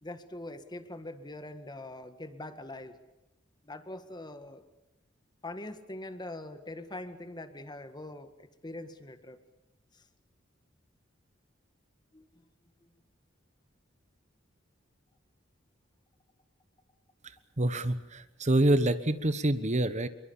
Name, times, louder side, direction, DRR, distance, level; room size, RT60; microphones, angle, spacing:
voice 1, 0.0-2.9 3.6-4.6 5.4-9.4 9.9-10.0 12.1-12.4, left 1 dB, 20° left, 9 dB, 1.7 m, -43 dB
voice 2, 17.6-20.1, right 1 dB, 35° right, 12 dB, 1.3 m, -26 dB
27.5 x 23.0 x 7.2 m, 0.93 s
head